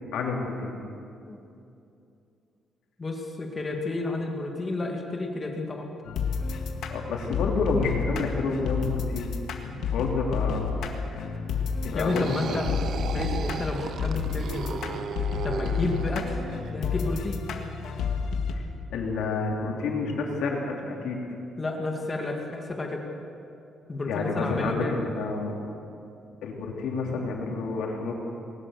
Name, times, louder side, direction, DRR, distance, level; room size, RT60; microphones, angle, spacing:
voice 1, 0.1-0.7 6.9-9.3 9.6-11.4 11.8-12.3 12.7-12.8 18.5-18.6 18.9-21.2 24.1-25.5 26.4-28.1, left 4 dB, 85° left, -1 dB, 3.8 m, -29 dB
voice 2, 3.0-5.9 11.9-12.7 13.1-15.0 15.4-16.4 16.7-17.4 21.6-23.0 23.9-25.2, left 2 dB, 20° left, 2 dB, 2.1 m, -31 dB
sound 1, 6.0-18.5, left 5 dB, 70° left, 1.9 m, -30 dB
sound 2, 11.9-16.7, right 7 dB, 50° right, 0.6 m, -36 dB
20.5 x 19.0 x 6.9 m, 2.6 s
cardioid pair, 165°, 0 cm